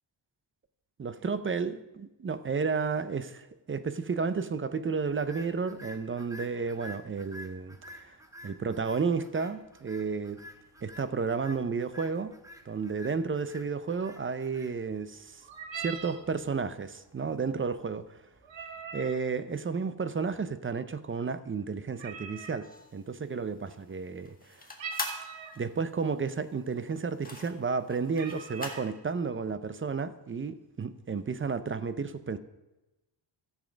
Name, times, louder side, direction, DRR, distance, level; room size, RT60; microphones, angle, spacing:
voice 1, 1.0-8.2 8.4-10.4 10.8-12.3 12.7-15.4 15.8-18.0 18.9-22.7 22.9-24.3 25.6-32.4, right 5 dB, 30° right, 12 dB, 0.5 m, -32 dB
sound 1, 5.1-19.4, left 1 dB, 5° right, 1.0 m, -52 dB
sound 2, 15.4-16.2 18.4-19.2 22.0-22.6 24.8-25.6 26.4-26.5 26.9-27.2 27.7-27.8 28.1-28.9, right 6 dB, 80° right, 1.3 m, -41 dB
sound 3, 22.6-28.9, left 2 dB, 20° left, 1.7 m, -42 dB
14.0 x 7.4 x 5.1 m, 1.0 s
wide cardioid pair, 150°, 45 cm